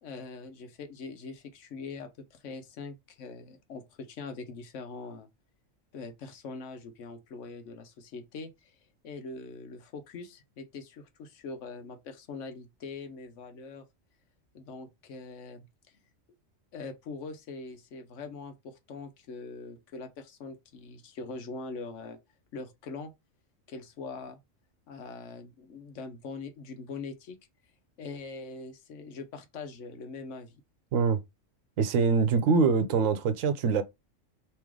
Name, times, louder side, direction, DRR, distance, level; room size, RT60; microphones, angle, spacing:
voice 1, 0.0-5.3 5.9-8.8 9.0-13.9 14.5-16.0 16.7-22.2 22.5-23.1 23.7-24.4 24.9-27.4 28.0-30.6, left 4 dB, 70° left, 1.1 m, -42 dB
voice 2, 31.8-33.8, right 5 dB, 85° right, 1.1 m, -24 dB
3.2 x 3.0 x 3.6 m
omnidirectional pair, 1.3 m